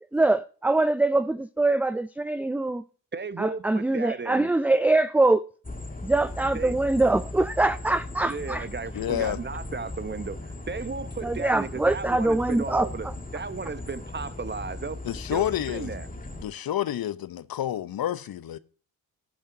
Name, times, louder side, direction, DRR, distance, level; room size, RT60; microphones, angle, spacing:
voice 1, 0.1-2.8 3.4-5.4 6.0-8.7 11.2-12.9, right 2 dB, 5° right, 0.4 m, -23 dB
voice 2, 3.1-4.5 6.5-6.8 8.3-15.0 15.3-16.1, right 4 dB, 25° right, 0.9 m, -35 dB
sound 1, 5.6-16.4, left 2 dB, 20° left, 2.2 m, -38 dB
voice 3, 8.9-9.4 15.0-15.9 16.4-18.6, left 11 dB, 55° left, 0.8 m, -29 dB
17.0 x 10.5 x 2.7 m
hypercardioid pair, 45°, 43 cm